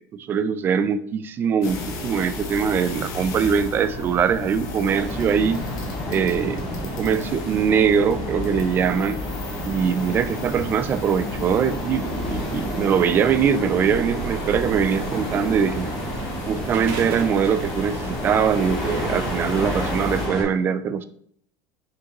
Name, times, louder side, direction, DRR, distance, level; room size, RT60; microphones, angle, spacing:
voice 1, 0.3-5.6 6.1-6.6 7.0-9.2 9.7-15.9 16.5-21.0, right 7 dB, 25° right, 13 dB, 0.4 m, -22 dB
sound 1, 1.6-20.3, left 1 dB, 50° left, 1.3 m, -33 dB
sound 2, 4.8-20.4, equal, 10° left, 2.7 m, -31 dB
sound 3, 14.8-20.2, right 3 dB, 75° right, 1.4 m, -40 dB
6.4 x 5.2 x 3.0 m, 0.66 s
cardioid pair, 160°, 8 cm